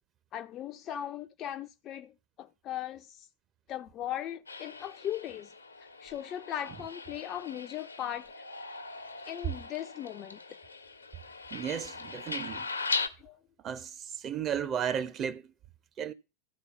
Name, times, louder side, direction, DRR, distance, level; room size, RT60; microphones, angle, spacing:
voice 1, 0.3-3.3 3.7-5.5 6.0-8.3 9.3-10.4 13.2-13.4, left 11 dB, 30° left, 0.5 m, -38 dB
sound 1, 4.5-13.1, left 4 dB, 80° left, 1.0 m, -39 dB
voice 2, 11.5-12.7 13.6-15.5 16.0-16.1, right 8 dB, 30° right, 0.6 m, -34 dB
13.0 x 4.5 x 6.8 m
figure-of-eight pair, 90°, 0 cm